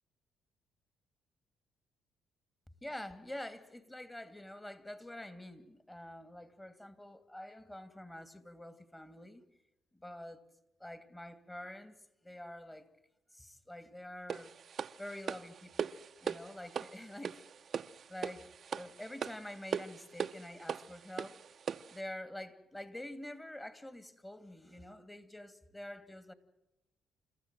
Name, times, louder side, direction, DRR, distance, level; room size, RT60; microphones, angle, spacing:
voice 1, 2.8-9.4 9.9-10.4 10.8-11.9 12.2-12.9 13.3-14.5 15.0-15.9 16.2-17.4 18.1-21.4 21.9-26.3, left 1 dB, 15° left, 2.6 m, -47 dB
sound 1, 14.3-22.0, right 7 dB, 50° right, 0.8 m, -40 dB
29.5 x 14.5 x 9.1 m
cardioid pair, 90°, 0 cm